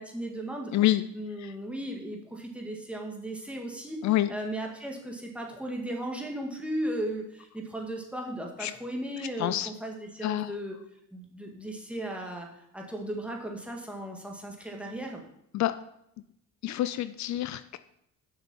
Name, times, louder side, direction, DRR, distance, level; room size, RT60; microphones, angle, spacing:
voice 1, 0.0-0.7 1.1-4.0 4.3-10.8 11.1-12.5 12.7-15.2, right 1 dB, 5° right, 0 dB, 1.9 m, -36 dB
voice 2, 0.7-1.0 1.4-1.5 4.0-4.3 8.6-8.7 9.4-9.7 10.2-10.5 15.5-15.7 16.6-17.8, left 14 dB, 70° left, 13 dB, 0.5 m, -27 dB
7.2 x 6.0 x 5.6 m, 0.78 s
cardioid pair, 90°, 30 cm